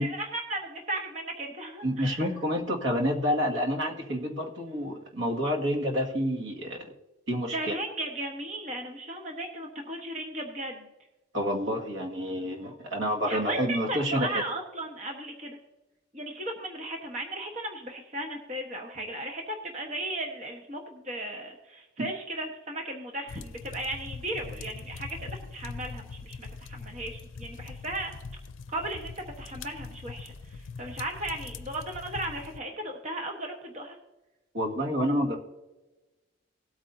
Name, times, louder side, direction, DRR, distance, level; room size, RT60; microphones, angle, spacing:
voice 1, 0.0-2.3 7.5-10.9 13.3-15.6 16.1-28.1 28.7-34.0, right 1 dB, 35° right, 1 dB, 1.2 m, -36 dB
voice 2, 1.8-6.9 7.3-7.7 11.3-14.4 22.0-22.1 34.5-35.4, equal, 75° right, 0 dB, 2.0 m, -28 dB
sound 1, 23.3-32.6, left 4 dB, 90° left, 0.5 m, -42 dB
18.5 x 8.6 x 2.7 m, 1.1 s
head